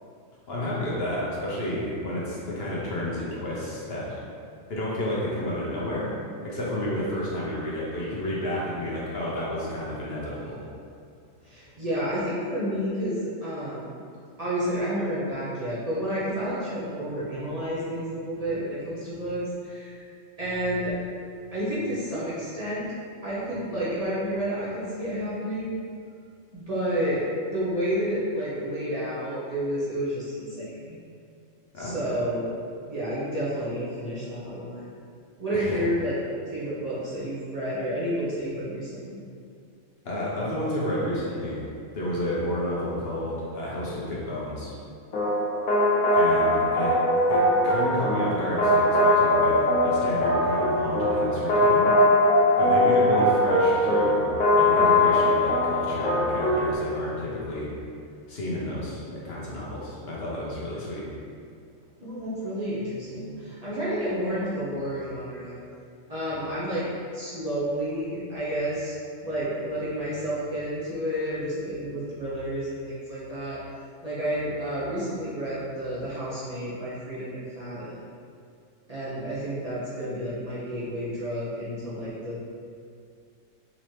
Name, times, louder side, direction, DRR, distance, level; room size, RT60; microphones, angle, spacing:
voice 1, 0.5-4.1 4.7-6.1 6.4-10.6 31.7-32.2 35.5-35.8 40.0-41.6 41.9-44.8 46.1-47.0 47.3-51.9 52.6-57.7 58.3-61.0, left 1 dB, 55° left, -6 dB, 0.9 m, -31 dB
voice 2, 11.4-13.8 14.4-20.1 20.4-20.9 21.5-22.9 23.2-25.8 26.5-31.0 31.8-32.6 32.9-34.9 35.4-36.2 36.5-39.2 62.0-65.6 66.1-66.9 67.1-69.0 69.2-73.6 74.0-78.0 78.9-82.4, equal, 35° right, -10 dB, 0.7 m, -30 dB
sound 1, 45.1-56.8, left 1 dB, 80° left, 1.2 m, -21 dB
4.0 x 2.8 x 3.1 m, 2.4 s
omnidirectional pair, 1.4 m